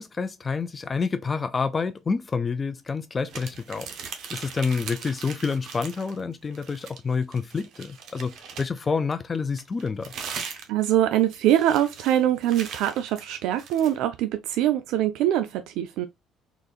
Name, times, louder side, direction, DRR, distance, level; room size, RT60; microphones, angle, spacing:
voice 1, 0.0-3.9 4.3-10.1, left 5 dB, 25° left, 0.3 m, -28 dB
sound 1, 3.3-6.2 6.5-8.9 9.6-14.0, right 6 dB, 60° right, 0.8 m, -40 dB
voice 2, 10.7-16.1, right 12 dB, 80° right, 0.3 m, -23 dB
3.8 x 2.5 x 2.3 m
cardioid pair, 120°, 0 cm